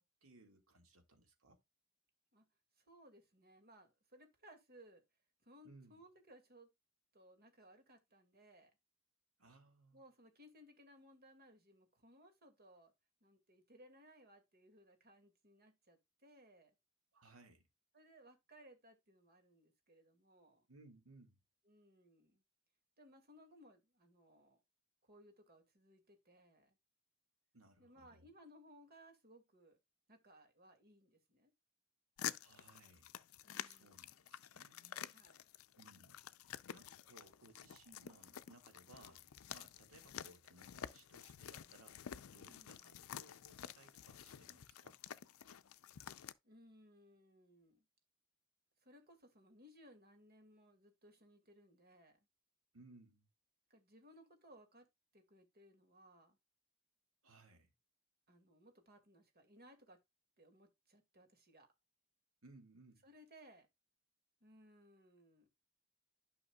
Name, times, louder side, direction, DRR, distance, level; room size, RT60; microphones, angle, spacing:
voice 1, 0.0-1.6 5.6-6.0 9.4-10.0 17.1-17.7 20.7-21.4 27.5-28.3 32.4-33.1 33.7-35.2 35.8-45.0 52.7-53.3 57.2-57.7 62.4-63.1, right 2 dB, 85° right, 2.0 m, -64 dB
voice 2, 2.8-5.0 5.4-6.7 7.1-8.7 9.9-12.9 13.2-16.7 17.9-20.7 21.6-22.4 23.0-24.6 25.0-26.8 27.8-29.8 30.1-31.5 33.4-34.2 35.1-35.4 42.5-42.8 46.4-47.8 48.8-52.2 53.7-54.9 55.1-56.4 58.3-60.0 60.4-61.7 63.0-63.7 64.4-65.5, equal, 50° right, 2.2 m, -63 dB
sound 1, 32.2-46.3, left 10 dB, 90° left, 0.5 m, -50 dB
11.5 x 5.7 x 2.3 m
head